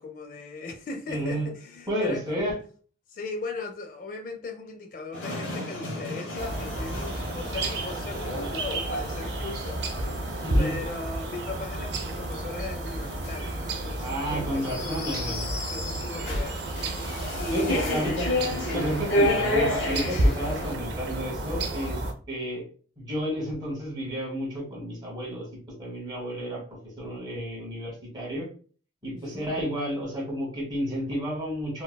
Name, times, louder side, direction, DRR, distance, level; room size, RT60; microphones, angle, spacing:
voice 1, 0.0-2.5 3.1-10.3 10.6-17.0 17.4-17.9 29.1-29.6, left 3 dB, 45° left, 0.4 m, -38 dB
voice 2, 1.1-1.5 1.9-2.6 10.4-10.7 14.0-15.5 17.5-22.0 22.3-22.7 23.0-25.4 25.8-26.6 27.0-28.5 29.0-31.8, equal, 20° right, 1.3 m, -31 dB
sound 1, 5.1-20.7, left 1 dB, 80° left, 0.9 m, -32 dB
sound 2, 6.4-22.1, right 1 dB, 60° right, 0.6 m, -31 dB
3.9 x 2.3 x 2.2 m
head